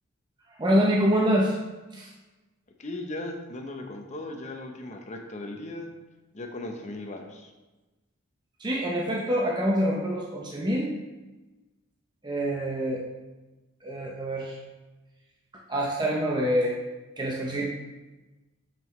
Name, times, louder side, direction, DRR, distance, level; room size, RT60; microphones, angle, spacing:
voice 1, 0.6-1.6 1.9-2.1 8.6-10.9 12.2-13.0 13.8-14.6 15.7-16.8 17.2-17.7, equal, 20° right, -2 dB, 0.7 m, -25 dB
voice 2, 2.8-5.9 6.3-7.5, left 2 dB, 35° left, 3 dB, 0.8 m, -37 dB
6.9 x 6.1 x 3.2 m, 1.1 s
head